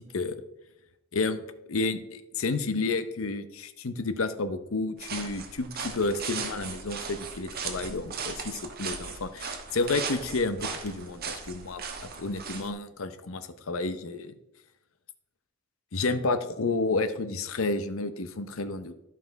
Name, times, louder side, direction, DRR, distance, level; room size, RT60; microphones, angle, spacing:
voice 1, 1.1-14.3 15.9-18.9, left 3 dB, 70° left, 11 dB, 0.7 m, -31 dB
sound 1, 5.0-12.7, right 5 dB, 45° right, 1.2 m, -37 dB
11.5 x 5.8 x 4.6 m, 0.89 s
head